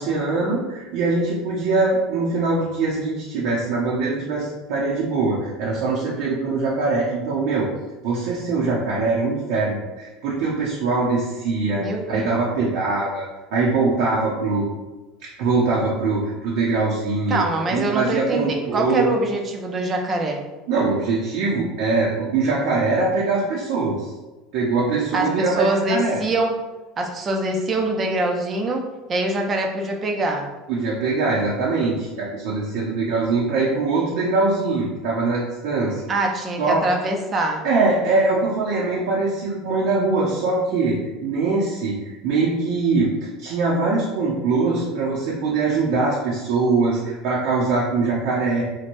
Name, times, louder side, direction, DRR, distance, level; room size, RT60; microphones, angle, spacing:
voice 1, 0.0-7.7 8.0-14.6 15.4-17.4 17.7-19.1 20.7-24.1 24.5-26.2 30.7-36.0 36.6-36.8 37.6-48.6, right 3 dB, 75° right, -5 dB, 0.6 m, -22 dB
voice 2, 11.8-12.3 17.3-20.4 25.1-26.6 27.0-30.5 36.1-37.6, right 2 dB, 30° right, 2 dB, 0.5 m, -24 dB
3.1 x 2.1 x 2.6 m, 1.1 s
supercardioid pair, 110°, 0 cm